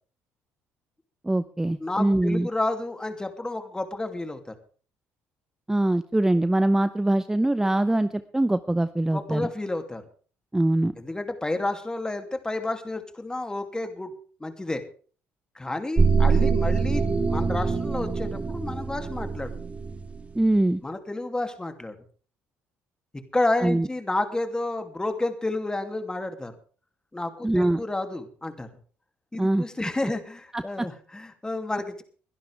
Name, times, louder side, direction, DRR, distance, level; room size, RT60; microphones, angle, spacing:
voice 1, 1.2-2.5 5.7-9.5 10.5-10.9 20.3-20.8 23.6-23.9 27.4-27.8 29.4-29.6 30.5-30.9, right 1 dB, 10° right, 13 dB, 0.7 m, -23 dB
voice 2, 1.8-4.5 7.6-7.7 9.1-10.0 11.0-14.8 15.5-19.5 20.8-21.9 23.3-26.5 27.1-28.7 29.3-32.0, left 2 dB, 15° left, 7 dB, 2.7 m, -30 dB
sound 1, 16.0-20.2, right 5 dB, 25° right, 1.8 m, -24 dB
22.5 x 11.5 x 3.5 m, 0.40 s
supercardioid pair, 75°, 5 cm